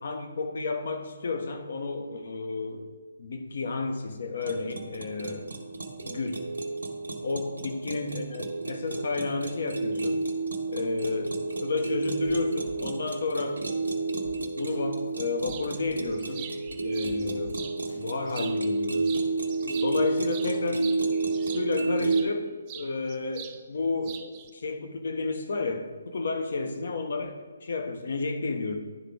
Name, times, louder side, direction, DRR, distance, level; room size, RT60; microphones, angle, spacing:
voice 1, 0.0-2.9 3.2-5.5 6.0-6.4 7.2-10.2 10.7-13.6 14.6-16.5 16.8-17.6 17.9-19.3 19.8-20.9 21.5-28.8, left 3 dB, 55° left, 6 dB, 0.9 m, -32 dB
sound 1, 4.4-22.2, right 3 dB, 80° right, 1.1 m, -31 dB
sound 2, 12.3-12.4 12.7-12.8 13.1-13.5 13.9-14.0 14.2-14.4 14.7-15.1 15.5-17.6 17.9-18.3, left 3 dB, 75° left, 1.6 m, -48 dB
sound 3, 15.5-15.7 16.1-17.8 18.3-18.8 19.0-22.3 22.7-23.6 23.8-24.5, right 9 dB, 25° right, 0.5 m, -43 dB
11.0 x 3.8 x 3.4 m, 1.4 s
figure-of-eight pair, 145°, 0 cm